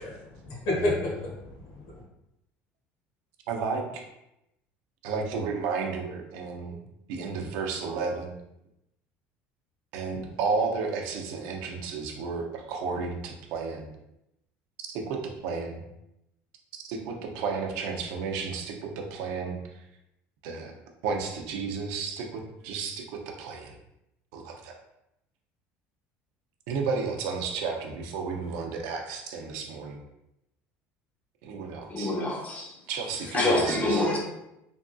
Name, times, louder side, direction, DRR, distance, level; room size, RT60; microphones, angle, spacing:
voice 1, 0.0-2.0, left 1 dB, 75° left, -4 dB, 1.3 m, -31 dB
voice 2, 3.5-4.0 5.0-6.8 7.1-8.3 9.9-13.9 14.9-15.8 16.9-19.6 20.4-20.7 21.0-23.8 24.3-24.7 26.7-30.0 31.4-32.1 32.9-34.1, right 5 dB, 80° right, 1 dB, 0.6 m, -32 dB
voice 3, 31.9-32.7 33.3-34.2, left 2 dB, 30° left, -2 dB, 0.9 m, -26 dB
3.4 x 2.5 x 2.3 m, 0.86 s
supercardioid pair, 110°, 5 cm